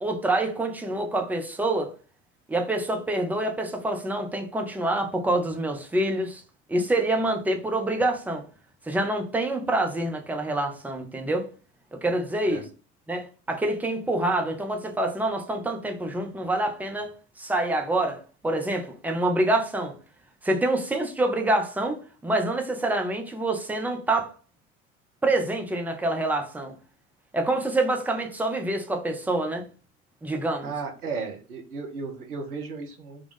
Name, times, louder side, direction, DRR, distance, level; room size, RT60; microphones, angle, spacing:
voice 1, 0.0-1.9 2.5-6.4 6.7-8.4 8.9-11.5 11.9-12.7 13.1-20.0 20.4-24.3 25.2-26.7 27.3-29.6 30.2-30.7, right 2 dB, 5° right, 0.6 m, -26 dB
voice 2, 30.6-33.3, right 4 dB, 80° right, 0.8 m, -35 dB
3.6 x 2.3 x 3.7 m
figure-of-eight pair, 70°, 43 cm